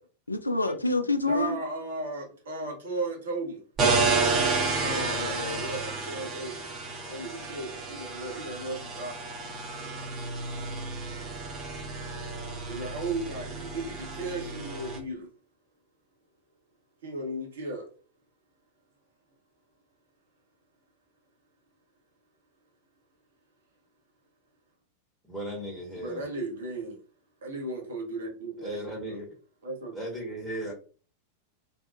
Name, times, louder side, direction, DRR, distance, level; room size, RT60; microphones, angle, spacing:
voice 1, 0.3-1.5 4.8-5.6, left 2 dB, 80° left, 0.3 m, -28 dB
voice 2, 1.2-3.6 5.6-6.6 7.1-9.1 12.7-15.3 17.0-17.9 25.9-27.0 27.4-28.8 29.1-29.2 29.6-29.9, right 2 dB, 65° right, 0.9 m, -35 dB
sound 1, 3.8-15.0, right 3 dB, 25° right, 0.7 m, -31 dB
voice 3, 25.3-26.3 28.6-29.3 29.9-30.7, right 1 dB, ahead, 0.9 m, -36 dB
2.6 x 2.2 x 2.4 m
figure-of-eight pair, 90°, 0 cm